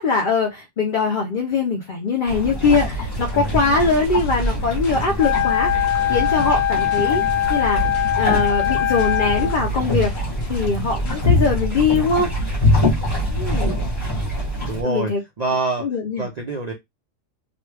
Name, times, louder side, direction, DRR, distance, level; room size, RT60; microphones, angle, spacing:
voice 1, 0.0-7.2 7.5-7.9 8.2-10.1 10.5-12.6 13.3-13.8 14.8-15.2 15.8-16.3, left 4 dB, 50° left, 0.7 m, -22 dB
sound 1, 2.3-14.8, left 1 dB, 25° left, 1.2 m, -24 dB
sound 2, 2.6-12.1, left 2 dB, 75° left, 1.3 m, -37 dB
Wind instrument woodwind instrument, 5.2-9.6, left 11 dB, 90° left, 1.0 m, -21 dB
voice 2, 14.7-15.1 15.4-15.9 16.1-16.7, right 3 dB, 55° right, 0.4 m, -25 dB
3.0 x 2.2 x 3.2 m
omnidirectional pair, 1.4 m